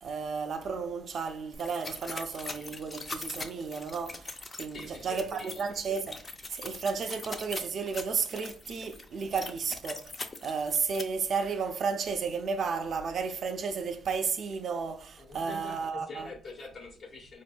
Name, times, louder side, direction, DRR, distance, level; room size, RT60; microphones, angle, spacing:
voice 1, 0.0-6.2 6.5-10.0 10.4-16.3, right 5 dB, 55° right, 0.5 m, -33 dB
sound 1, 1.5-11.0, left 3 dB, 30° left, 0.5 m, -42 dB
voice 2, 4.7-5.8 15.2-17.4, left 3 dB, 55° left, 1.2 m, -45 dB
4.1 x 2.6 x 2.2 m
cardioid pair, 90°, 0 cm